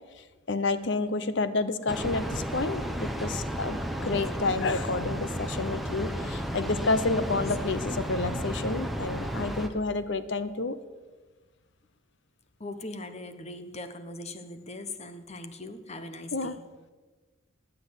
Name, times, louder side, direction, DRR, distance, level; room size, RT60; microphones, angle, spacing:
voice 1, 0.5-10.8 16.3-16.5, left 3 dB, 60° left, 13 dB, 0.9 m, -29 dB
Train, 1.9-9.7, equal, ahead, 1.1 m, -33 dB
voice 2, 12.6-16.6, left 2 dB, 35° left, 10 dB, 1.1 m, -40 dB
20.0 x 7.6 x 8.3 m, 1.3 s
head